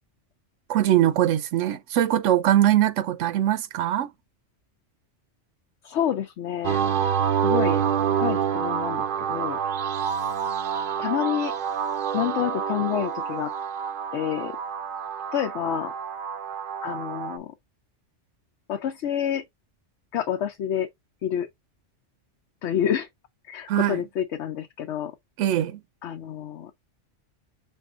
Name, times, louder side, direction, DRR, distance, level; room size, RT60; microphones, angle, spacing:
voice 1, 0.7-4.1 23.7-24.0 25.4-25.8, right 12 dB, 85° right, 0.9 m, -22 dB
voice 2, 5.8-6.8 7.4-7.8 8.2-9.6 11.0-11.5 12.1-13.5 14.1-14.6 15.3-15.9 16.8-17.5 18.7-19.4 20.1-20.9 21.2-21.5 22.6-23.1 23.4-25.1 26.0-26.7, left 9 dB, 75° left, 0.9 m, -28 dB
sound 1, 6.6-17.4, right 8 dB, 60° right, 0.6 m, -27 dB
5.6 x 3.5 x 2.5 m
omnidirectional pair, 1.2 m